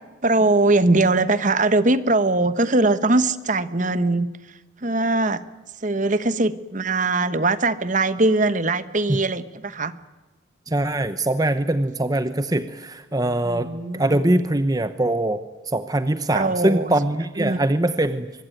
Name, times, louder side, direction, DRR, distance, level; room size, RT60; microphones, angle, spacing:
voice 1, 0.2-4.3 4.8-5.4 5.8-9.9 13.4-14.2 16.3-16.9 17.4-17.6, right 2 dB, 40° right, 13 dB, 1.2 m, -21 dB
voice 2, 10.7-18.3, right 1 dB, 20° right, 10 dB, 0.9 m, -22 dB
24.5 x 22.0 x 9.3 m, 1.2 s
head